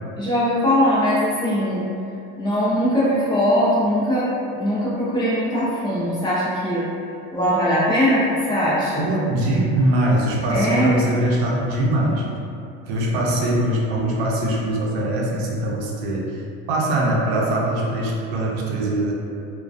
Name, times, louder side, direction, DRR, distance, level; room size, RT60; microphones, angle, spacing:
voice 1, 0.2-1.9 2.4-6.9 7.3-9.1 10.5-11.0, equal, 15° left, -11 dB, 0.6 m, -20 dB
voice 2, 9.0-12.2 12.9-16.4 16.7-19.1, right 1 dB, 85° right, -3 dB, 0.6 m, -22 dB
2.3 x 2.2 x 2.5 m, 2.5 s
cardioid pair, 165°, 31 cm